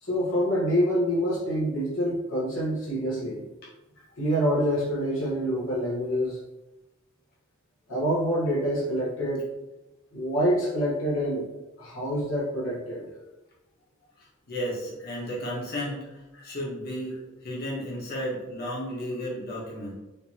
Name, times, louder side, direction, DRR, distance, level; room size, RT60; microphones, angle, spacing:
voice 1, 0.0-3.4 4.2-6.4 7.9-9.4 10.1-11.5 11.8-13.1 16.3-16.4, equal, 70° left, -7 dB, 1.2 m, -26 dB
voice 2, 14.5-17.2 17.4-19.9, equal, 50° left, -6 dB, 1.4 m, -33 dB
5.1 x 2.9 x 2.9 m, 1.0 s
head